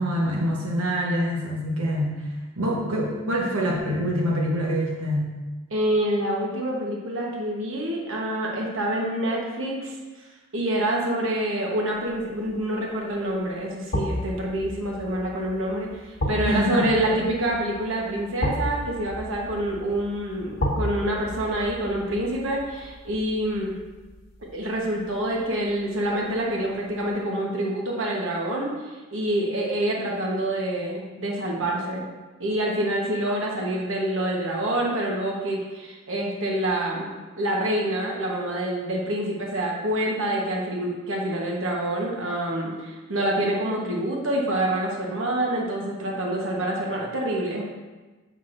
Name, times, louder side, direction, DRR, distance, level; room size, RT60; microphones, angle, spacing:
voice 1, 0.0-2.3 2.6-5.3 16.5-16.9, equal, 90° right, -3 dB, 1.1 m, -25 dB
voice 2, 5.7-9.9 10.5-23.7 24.5-32.1 32.4-47.6, right 1 dB, 65° right, -2 dB, 1.2 m, -27 dB
sound 1, 12.1-12.5 13.9-24.9 25.2-25.4, left 1 dB, 70° left, 1.3 m, -33 dB
7.9 x 5.9 x 2.6 m, 1.2 s
head